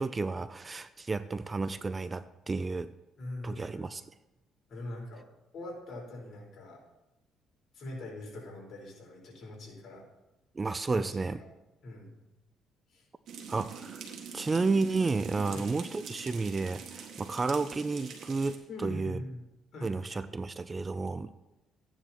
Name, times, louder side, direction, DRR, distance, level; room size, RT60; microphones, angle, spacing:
voice 1, 0.0-2.9 3.4-4.0 10.6-11.4 13.5-14.0 14.3-19.2 19.8-21.3, right 3 dB, 25° right, 13 dB, 0.4 m, -32 dB
voice 2, 3.2-4.0 4.7-5.3 5.5-6.8 7.7-10.1 10.9-11.5 11.8-12.3 12.9-13.0 15.4-15.7 18.7-19.4 19.7-19.9, left 1 dB, 50° left, -3 dB, 4.5 m, -43 dB
sound 1, 13.3-18.5, right 6 dB, 65° right, 1.8 m, -45 dB
14.5 x 9.9 x 3.0 m, 0.98 s
cardioid pair, 100°, 0 cm